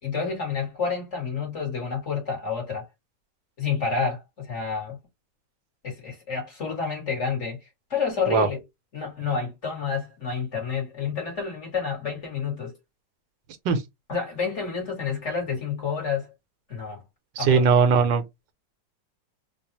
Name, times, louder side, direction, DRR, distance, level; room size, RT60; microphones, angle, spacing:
voice 1, 0.0-2.9 3.6-5.0 5.8-8.6 8.9-12.7 14.1-16.3 16.7-17.0 17.4-17.6, left 5 dB, 40° left, 2.1 m, -29 dB
voice 2, 17.4-18.2, right 5 dB, 90° right, 1.5 m, -19 dB
4.0 x 2.5 x 2.9 m
omnidirectional pair, 1.9 m